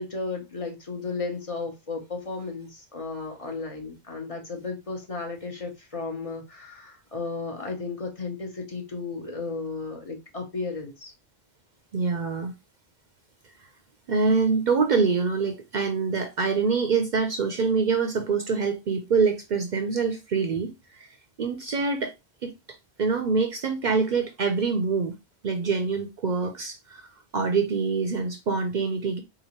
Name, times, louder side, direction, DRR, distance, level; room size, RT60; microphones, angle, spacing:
voice 1, 0.0-11.1, left 3 dB, 35° left, 0.8 m, -34 dB
voice 2, 11.9-12.5 14.1-22.1 22.4-22.5 23.0-25.2 25.4-27.1 27.3-29.2, right 5 dB, 55° right, 0.6 m, -25 dB
3.9 x 2.9 x 2.8 m
omnidirectional pair, 1.1 m